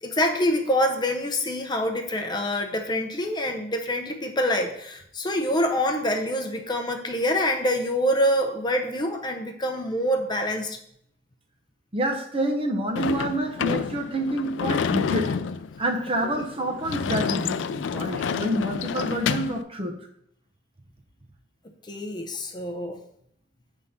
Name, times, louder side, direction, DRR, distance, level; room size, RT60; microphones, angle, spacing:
voice 1, 0.0-10.8 16.2-16.4 21.9-23.0, equal, 25° left, 4 dB, 0.6 m, -26 dB
voice 2, 11.9-15.3 15.8-19.9, right 1 dB, 30° right, 3 dB, 0.8 m, -27 dB
Sliding door / Slam, 13.0-19.6, left 6 dB, 80° left, 0.3 m, -29 dB
8.1 x 3.6 x 5.5 m, 0.71 s
head